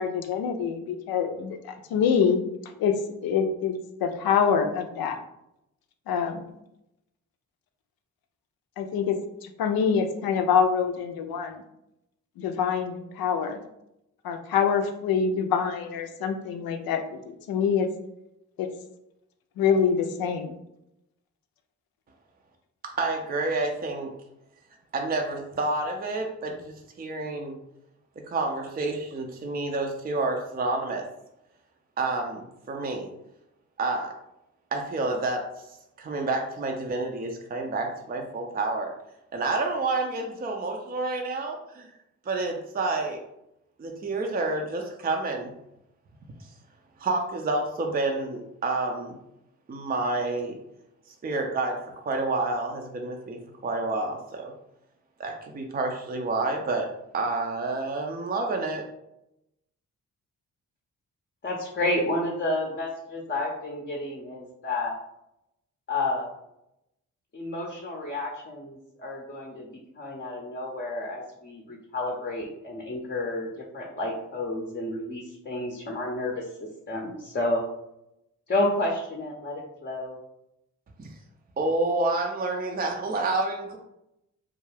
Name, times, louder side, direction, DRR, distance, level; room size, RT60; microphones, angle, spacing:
voice 1, 0.0-2.4 2.8-2.9 3.2-3.7 4.0-5.2 6.1-6.4 8.8-9.2 9.4-11.6 12.4-13.6 14.2-17.9 18.6-18.7 19.6-20.5, left 6 dB, 75° left, 6 dB, 0.5 m, -25 dB
voice 2, 22.8-24.1 24.9-27.6 28.2-31.0 32.0-33.1 33.8-34.1 34.7-38.9 39.3-41.9 42.2-43.2 43.8-45.5 46.4-46.5 47.0-49.2 49.7-50.6 51.1-51.8 52.1-54.5 55.2-56.9 57.1-58.9 81.0-81.2 81.6-83.8, right 2 dB, 25° right, 2 dB, 0.5 m, -29 dB
voice 3, 61.4-64.9 65.9-66.3 67.3-69.7 70.0-76.5 76.9-77.6 78.5-80.2, left 2 dB, 30° left, -1 dB, 0.6 m, -30 dB
2.3 x 2.2 x 3.2 m, 0.84 s
supercardioid pair, 45°, 36 cm